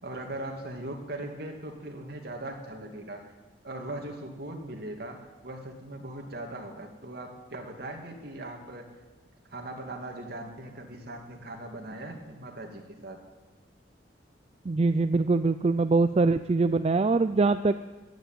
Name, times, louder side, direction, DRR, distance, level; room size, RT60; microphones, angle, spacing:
voice 1, 0.0-3.2 3.6-8.9 9.5-13.2, right 1 dB, 60° right, 2 dB, 2.5 m, -39 dB
voice 2, 14.7-17.8, right 3 dB, 35° right, 11 dB, 0.4 m, -23 dB
15.0 x 10.0 x 9.0 m, 1.2 s
head